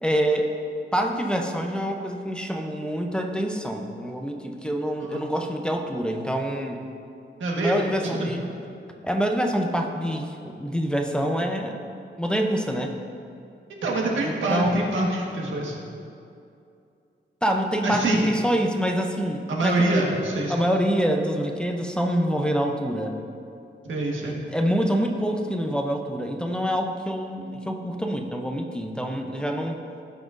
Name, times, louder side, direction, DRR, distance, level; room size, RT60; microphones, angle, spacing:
voice 1, 0.0-0.5 0.9-6.8 7.6-8.5 9.0-11.8 12.2-12.9 14.2-15.2 15.7-15.8 17.4-19.7 20.0-20.1 20.5-23.1 24.2-29.8, equal, 5° left, 2 dB, 0.7 m, -26 dB
voice 2, 7.4-8.3 13.8-15.8 17.8-18.3 19.5-20.6 23.8-24.4, right 2 dB, 90° right, -1 dB, 1.5 m, -25 dB
17.5 x 5.9 x 2.6 m, 2.5 s
wide cardioid pair, 105°, 19 cm